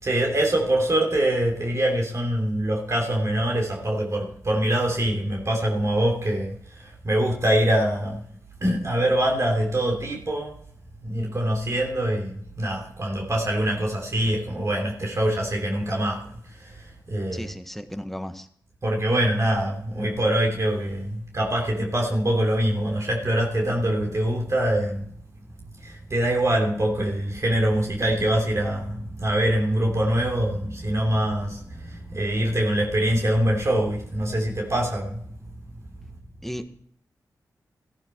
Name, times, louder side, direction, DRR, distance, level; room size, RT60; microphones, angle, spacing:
voice 1, 0.0-8.2 8.6-10.5 11.0-17.5 18.8-25.1 25.8-35.2, right 1 dB, 45° right, 0 dB, 3.2 m, -24 dB
voice 2, 17.3-18.5 36.4-36.7, equal, 5° left, 9 dB, 1.4 m, -34 dB
14.5 x 11.0 x 4.5 m, 0.63 s
cardioid pair, 50°, 7 cm